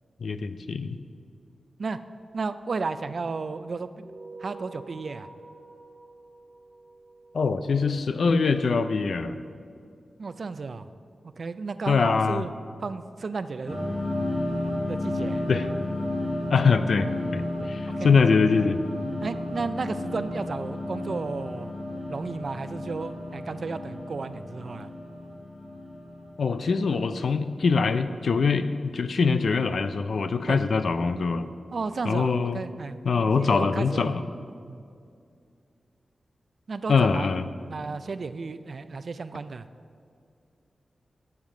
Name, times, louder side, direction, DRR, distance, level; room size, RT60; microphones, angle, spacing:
voice 1, 0.2-1.0 7.3-9.4 11.9-12.4 15.5-15.7 16.5-18.8 26.4-31.5 32.0-32.6 33.0-34.2 36.9-37.5, left 5 dB, 70° left, 11 dB, 0.4 m, -23 dB
voice 2, 2.3-4.1 4.4-5.3 10.2-10.9 11.4-12.5 12.8-13.8 14.9-15.5 17.9-18.1 19.2-21.7 22.1-24.9 30.5-30.6 31.7-33.0 33.3-34.2 34.7-34.8 36.7-37.3 37.7-39.7, right 4 dB, 60° right, 12 dB, 0.4 m, -33 dB
sound 1, 4.0-8.8, right 3 dB, 5° right, 2.0 m, -48 dB
sound 2, 13.7-27.6, left 1 dB, 35° left, 2.0 m, -32 dB
12.0 x 7.3 x 3.8 m, 2.4 s
cardioid pair, 65°, 0 cm